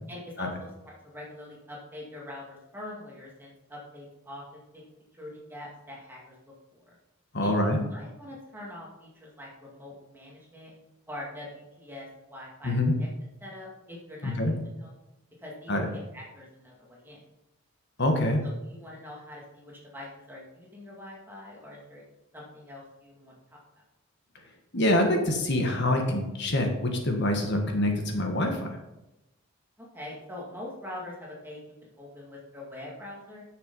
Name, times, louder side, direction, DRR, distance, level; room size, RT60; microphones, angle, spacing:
voice 1, 0.1-4.8 5.1-6.4 6.7-6.9 7.4-10.7 11.1-12.7 13.0-13.1 13.4-14.9 15.4-17.2 18.4-22.0 22.3-23.6 29.8-31.6 32.0-33.4, left 1 dB, 10° right, -3 dB, 2.1 m, -44 dB
voice 2, 7.3-7.9 12.6-12.9 14.2-14.5 15.7-15.9 18.0-18.4 24.7-28.7, left 1 dB, 50° left, 3 dB, 1.6 m, -25 dB
9.6 x 6.8 x 5.4 m, 0.96 s
head